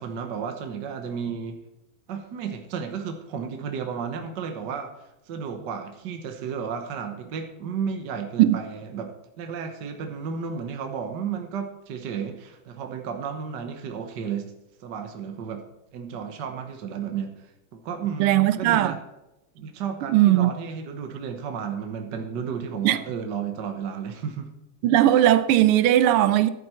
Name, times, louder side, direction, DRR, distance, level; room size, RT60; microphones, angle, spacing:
voice 1, 0.0-1.6 2.1-4.9 5.3-14.5 14.8-15.6 15.9-17.5 17.7-19.0 19.5-24.5, right 6 dB, 60° right, 1.6 m, -33 dB
voice 2, 18.2-19.0 20.1-20.5 22.8-23.0 24.8-26.5, right 13 dB, 85° right, 1.6 m, -18 dB
11.0 x 9.6 x 4.4 m
omnidirectional pair, 2.4 m